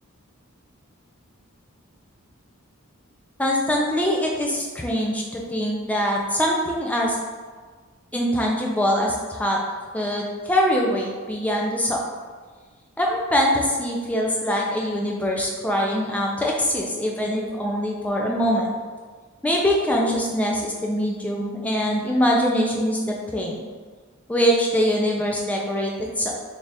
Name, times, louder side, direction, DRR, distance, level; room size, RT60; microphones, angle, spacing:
voice 1, 3.4-7.2 8.1-9.6 9.9-12.0 13.0-18.7 19.4-23.6 24.3-26.3, equal, 5° left, -2 dB, 0.4 m, -23 dB
3.3 x 2.4 x 4.0 m, 1.5 s
head